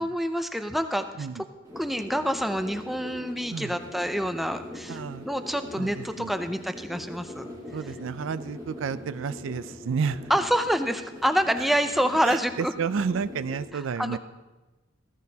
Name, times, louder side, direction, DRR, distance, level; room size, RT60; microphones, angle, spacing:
voice 1, 0.0-1.3 1.8-7.5 10.3-12.7 13.7-14.2, equal, ahead, 8 dB, 0.4 m, -27 dB
sound 1, 1.6-13.6, left 1 dB, 15° right, 2.7 m, -42 dB
voice 2, 4.9-5.3 5.8-6.3 7.7-10.3 12.1-14.2, right 6 dB, 75° right, 15 dB, 0.4 m, -31 dB
15.0 x 14.5 x 2.8 m, 1.2 s
head